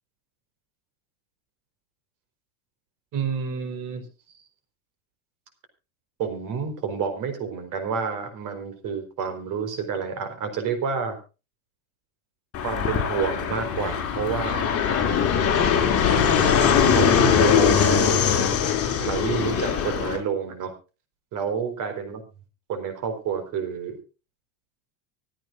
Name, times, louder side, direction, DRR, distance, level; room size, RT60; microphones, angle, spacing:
voice 1, 3.1-4.1 4.3-4.4 6.2-11.2 12.6-14.8 16.9-18.2 19.0-20.7 21.3-22.2 22.7-24.0, right 6 dB, 45° right, 7 dB, 4.5 m, -29 dB
Fixed-wing aircraft airplane, 12.5-20.2, left 7 dB, 30° left, 4.7 m, -21 dB
26.0 x 9.0 x 2.6 m, 0.32 s
supercardioid pair, 140°, 44 cm